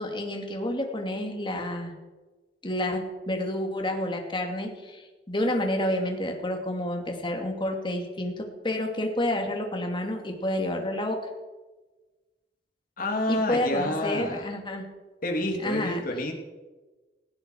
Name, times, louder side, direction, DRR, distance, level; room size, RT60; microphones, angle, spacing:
voice 1, 0.0-1.9 2.6-11.3 13.3-14.9 15.6-16.0, left 1 dB, 30° left, 3 dB, 2.6 m, -29 dB
voice 2, 13.0-14.5 15.2-16.3, left 1 dB, 50° left, 1 dB, 3.1 m, -28 dB
19.0 x 16.0 x 4.7 m, 1.2 s
head